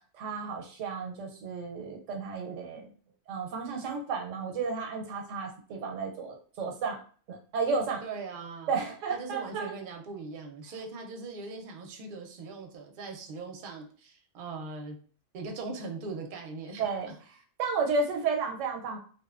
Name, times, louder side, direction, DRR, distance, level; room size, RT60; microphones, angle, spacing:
voice 1, 0.1-2.9 3.3-7.0 7.3-8.0 8.7-9.7 16.8-17.1 17.6-19.0, right 4 dB, 85° right, 3 dB, 1.0 m, -32 dB
voice 2, 8.0-8.7 9.1-15.0 15.3-17.1, right 3 dB, 55° right, 2 dB, 0.7 m, -40 dB
2.7 x 2.1 x 2.3 m, 0.42 s
omnidirectional pair, 1.2 m